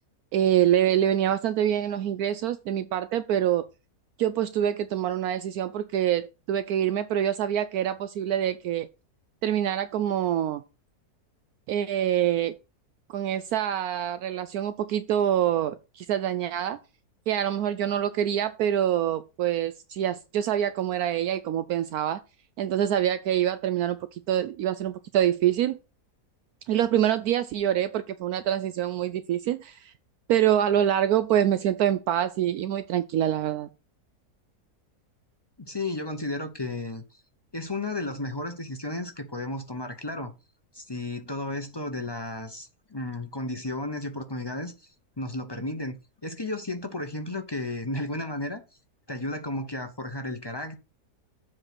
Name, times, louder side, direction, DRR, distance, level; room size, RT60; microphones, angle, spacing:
voice 1, 0.3-3.7 4.2-8.9 9.4-10.6 11.7-12.6 13.1-16.8 17.3-22.2 22.6-25.8 26.7-29.9 30.3-33.7, right 10 dB, 75° right, 1.0 m, -25 dB
voice 2, 35.6-37.0 37.5-40.3 40.7-44.9 45.2-46.0 46.2-48.6 49.1-50.8, left 2 dB, 25° left, 0.6 m, -33 dB
7.5 x 4.8 x 6.0 m
omnidirectional pair, 1.7 m